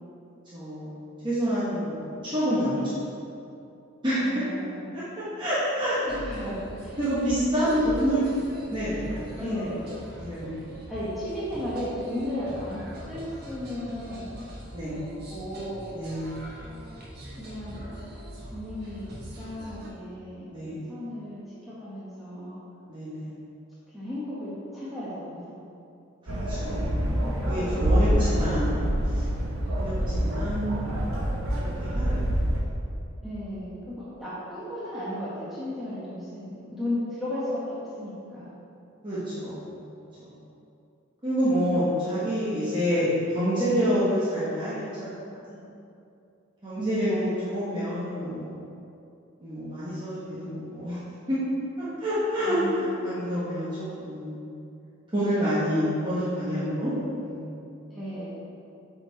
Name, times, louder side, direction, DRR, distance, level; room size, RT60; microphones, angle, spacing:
voice 1, 0.5-1.0 1.2-3.0 4.0-4.4 4.9-5.0 5.4-6.7 7.0-9.5 10.1-10.6 14.7-15.0 15.9-16.3 20.5-20.8 22.9-23.3 26.2-26.9 27.4-28.7 29.1-29.2 29.7-31.3 31.8-32.1 39.0-39.6 40.2-40.3 41.2-45.1 45.5-45.6 46.6-48.6 49.4-51.0 51.3-51.4 51.8-54.4 55.1-57.4, equal, 25° right, -12 dB, 1.3 m, -28 dB
voice 2, 4.3-5.0 6.2-7.0 7.6-7.7 9.4-9.9 10.9-14.4 14.9-15.0 15.3-15.9 17.3-18.0 18.5-19.1 19.4-22.6 23.9-25.6 33.2-38.5 46.8-47.6 52.5-52.8 57.9-58.2, left 1 dB, ahead, -11 dB, 1.2 m, -35 dB
sound 1, 6.1-19.9, equal, 50° right, 1.2 m, -42 dB
sound 2, 26.3-32.6, equal, 80° right, 1.0 m, -26 dB
8.2 x 4.4 x 4.1 m, 2.6 s
head